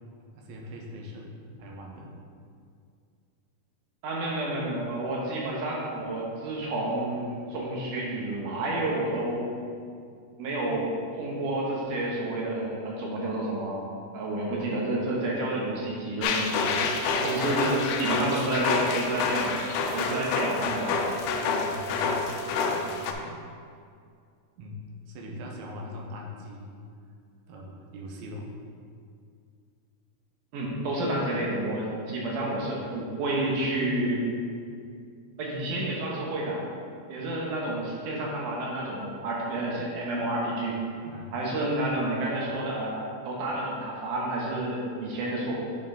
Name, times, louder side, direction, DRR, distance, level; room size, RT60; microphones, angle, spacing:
voice 1, 0.2-2.1 16.6-17.3 21.6-23.4 24.6-26.8 27.5-28.5 41.0-41.4, left 1 dB, 85° right, -1 dB, 2.7 m, -42 dB
voice 2, 4.0-9.5 10.4-10.9 11.2-13.8 14.1-16.6 17.2-19.6 19.9-21.0 21.5-21.6 30.5-34.2 35.4-36.6 37.1-40.8 41.3-45.5, right 1 dB, 70° right, -3 dB, 2.2 m, -30 dB
sound 1, 16.2-23.1, left 4 dB, 85° left, 2.5 m, -28 dB
9.2 x 4.5 x 3.8 m, 2.3 s
omnidirectional pair, 4.5 m